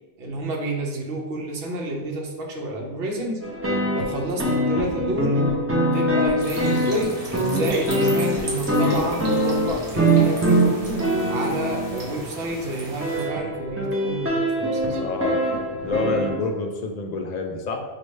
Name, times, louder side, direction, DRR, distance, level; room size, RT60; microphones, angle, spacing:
voice 1, 0.2-3.5 3.9-5.5 5.8-7.2 7.5-11.0 11.3-15.0, right 1 dB, 65° right, 0 dB, 1.0 m, -29 dB
sound 1, 3.4-12.2 13.0-16.3, right 1 dB, 15° right, 0.5 m, -23 dB
sound 2, 6.4-13.3, right 1 dB, 35° right, 0.8 m, -37 dB
voice 2, 15.0-15.4 15.8-17.8, left 3 dB, 50° left, 2 dB, 0.5 m, -28 dB
5.2 x 2.4 x 3.2 m, 1.2 s
omnidirectional pair, 1.2 m